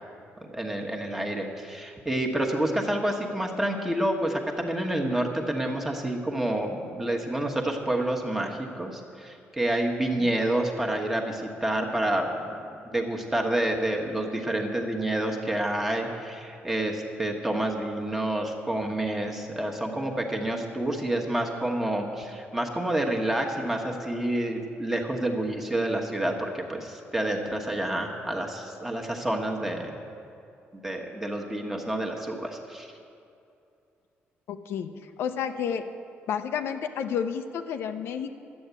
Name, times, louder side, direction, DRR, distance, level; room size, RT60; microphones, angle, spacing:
voice 1, 0.4-12.6 12.9-29.9 30.7-32.9, right 1 dB, 10° right, 1 dB, 1.2 m, -28 dB
voice 2, 34.5-35.9 36.3-38.3, left 7 dB, 75° left, 7 dB, 0.6 m, -31 dB
12.0 x 8.6 x 8.1 m, 2.6 s
cardioid pair, 165°, 4 cm